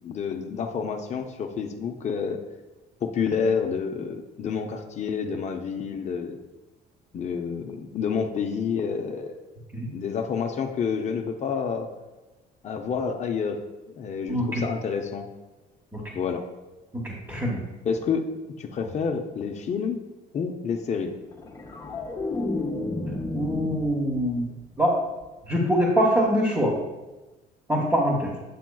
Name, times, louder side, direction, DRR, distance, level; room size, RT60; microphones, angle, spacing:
voice 1, 0.0-2.4 3.0-6.4 7.1-9.4 9.9-11.9 12.6-13.6 13.9-15.3 16.1-16.4 17.8-18.3 18.6-20.0 20.3-21.1, left 6 dB, 45° left, 4 dB, 0.6 m, -29 dB
voice 2, 14.3-14.6 15.9-16.0 17.0-17.6 23.3-24.5 24.8-24.9 25.5-26.7 27.7-28.3, equal, 15° right, -3 dB, 1.1 m, -23 dB
sound 1, 21.3-24.5 24.8-25.2, left 2 dB, 20° left, 0.8 m, -32 dB
8.3 x 5.8 x 2.3 m, 1.1 s
cardioid pair, 110°, 17 cm